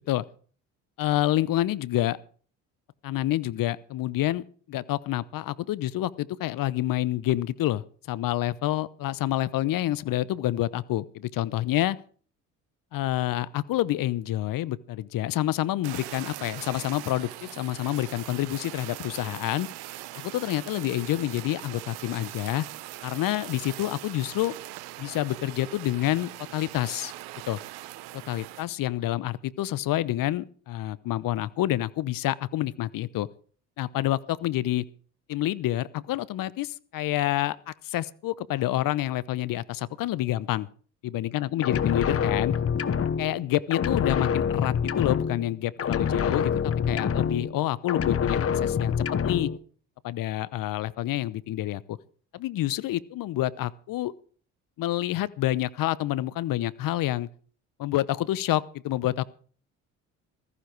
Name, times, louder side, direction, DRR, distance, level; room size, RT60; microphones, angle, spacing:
voice 1, 1.0-2.2 3.0-12.0 12.9-19.7 20.2-22.6 23.0-24.5 25.0-27.1 27.5-27.6 28.3-33.3 33.8-34.8 35.3-40.7 41.0-42.5 43.2-48.9 49.2-49.5 50.0-52.0 52.3-54.1 54.8-57.3 57.8-59.2, left 14 dB, 55° left, 19 dB, 0.9 m, -28 dB
Fire, 15.8-28.7, right 17 dB, 70° right, 1.0 m, -41 dB
sound 1, 41.6-43.5 43.7-45.5 45.8-47.6 47.9-49.6, left 7 dB, 35° left, 1.1 m, -26 dB
15.0 x 14.5 x 4.7 m, 0.43 s
hypercardioid pair, 65°, 39 cm